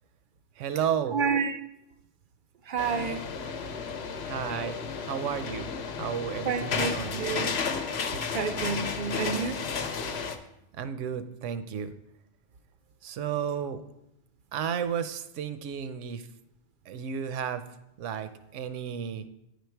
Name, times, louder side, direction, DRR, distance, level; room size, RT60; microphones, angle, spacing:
voice 1, 0.6-1.2 4.2-7.2 10.8-11.9 13.0-13.8 14.5-16.3 16.9-17.6 18.0-19.2, right 8 dB, 80° right, 11 dB, 0.9 m, -33 dB
voice 2, 1.1-1.6 2.7-3.2 6.4-7.5 8.3-9.6 10.0-10.2, right 6 dB, 60° right, 9 dB, 0.5 m, -30 dB
sound 1, 2.8-10.4, left 5 dB, 65° left, 0.9 m, -33 dB
9.3 x 5.1 x 4.5 m, 0.82 s
omnidirectional pair, 1.3 m